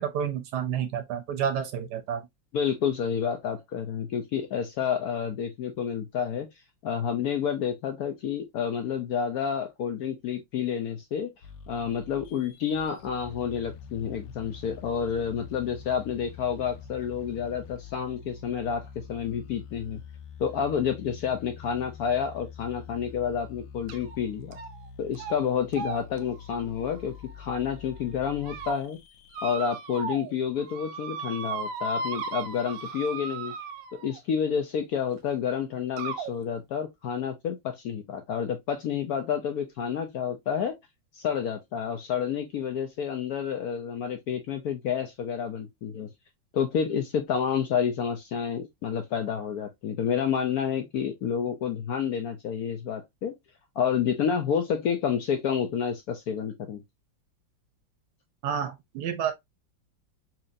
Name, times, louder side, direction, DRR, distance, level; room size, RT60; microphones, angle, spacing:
voice 1, 0.0-2.2 58.4-59.3, right 8 dB, 70° right, 1.1 m, -30 dB
voice 2, 2.5-6.5 6.8-11.3 11.7-20.0 20.4-24.6 25.0-29.0 29.4-33.5 33.9-40.8 41.1-46.1 46.5-53.3 53.8-56.8, left 7 dB, 70° left, 0.9 m, -29 dB
sound 1, 11.4-29.9, left 6 dB, 85° left, 1.4 m, -46 dB
sound 2, 23.9-24.2 24.5-24.9 25.1-25.4 25.7-27.7 28.2-28.7 29.3-30.3 30.6-34.2 35.2-35.3 36.0-36.3, right 4 dB, 85° right, 1.4 m, -36 dB
4.3 x 2.8 x 2.5 m
omnidirectional pair, 2.1 m